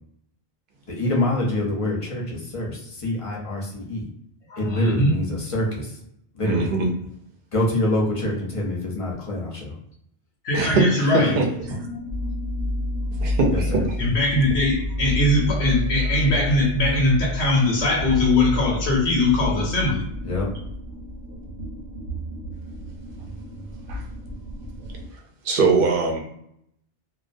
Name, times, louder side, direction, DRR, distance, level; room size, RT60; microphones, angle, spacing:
voice 1, 0.9-4.0 4.6-6.0 6.3-6.7 7.5-9.8 13.5-13.8 20.2-20.5, left 1 dB, 35° left, -2 dB, 0.6 m, -26 dB
voice 2, 4.5-5.1 10.4-11.4 14.0-20.0, left 2 dB, 90° left, -2 dB, 0.9 m, -21 dB
voice 3, 6.4-6.9 10.5-11.8 13.2-13.5 13.7-13.8 23.9-24.0 25.4-26.2, right 3 dB, 60° right, 2 dB, 0.7 m, -21 dB
sound 1, 11.6-25.1, left 1 dB, 85° right, 0.9 m, -30 dB
2.3 x 2.1 x 2.5 m, 0.73 s
omnidirectional pair, 1.1 m